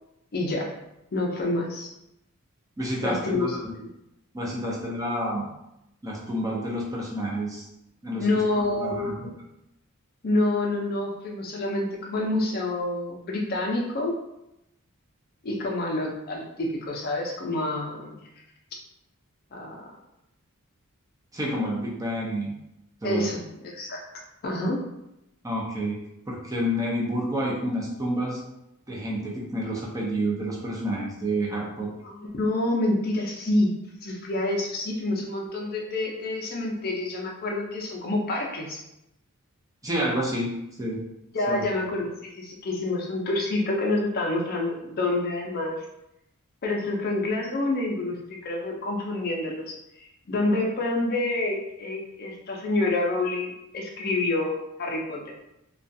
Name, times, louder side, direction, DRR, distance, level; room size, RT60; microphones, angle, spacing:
voice 1, 0.3-0.7 1.1-1.9 3.0-3.9 8.2-9.2 10.2-14.2 15.4-18.3 19.5-19.8 23.0-24.0 24.4-24.8 32.0-33.7 34.0-38.8 41.3-45.8 46.6-48.2 48.4-55.3, left 2 dB, 45° left, 0 dB, 0.5 m, -28 dB
voice 2, 2.8-3.7 4.3-5.5 6.0-7.7 8.0-8.3 8.5-9.3 21.3-22.6 23.0-23.3 25.4-26.0 26.3-28.4 28.9-31.9 39.8-40.5 40.8-41.0 41.5-41.6, equal, 15° right, -3 dB, 0.4 m, -29 dB
2.3 x 2.2 x 2.6 m, 0.86 s
head